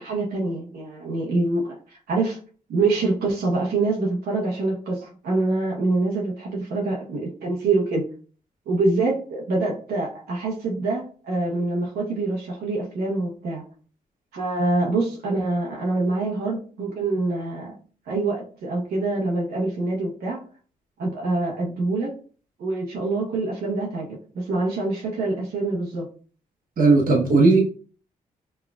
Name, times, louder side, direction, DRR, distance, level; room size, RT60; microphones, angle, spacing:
voice 1, 0.0-1.8 2.1-2.4 2.7-8.0 8.7-13.6 14.3-17.7 18.1-20.4 21.0-22.1 22.6-26.1, right 3 dB, 90° right, -3 dB, 1.1 m, -25 dB
voice 2, 26.8-27.6, right 3 dB, 65° right, -1 dB, 1.0 m, -16 dB
5.8 x 2.3 x 2.3 m, 0.41 s
cardioid pair, 60°, 16 cm